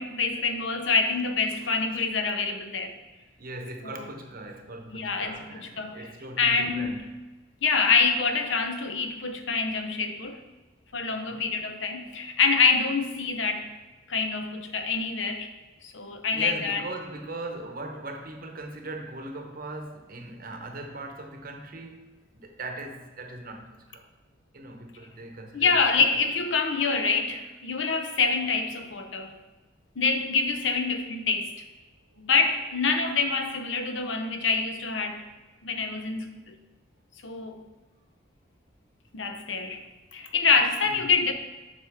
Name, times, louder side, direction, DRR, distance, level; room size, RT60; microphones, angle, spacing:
voice 1, 0.0-2.9 3.8-4.0 4.9-6.1 6.4-7.0 7.6-10.4 10.9-13.7 14.1-15.5 15.8-16.8 25.5-29.4 30.0-31.5 32.2-35.2 35.6-36.5 37.2-37.6 39.1-39.8 40.1-41.3, left 5 dB, 70° left, 6 dB, 0.7 m, -26 dB
voice 2, 3.4-7.0 11.3-11.5 16.3-24.1 24.5-26.1 32.1-32.3 40.9-41.1, right 2 dB, 50° right, 4 dB, 0.9 m, -40 dB
7.8 x 5.9 x 3.5 m, 1.2 s
head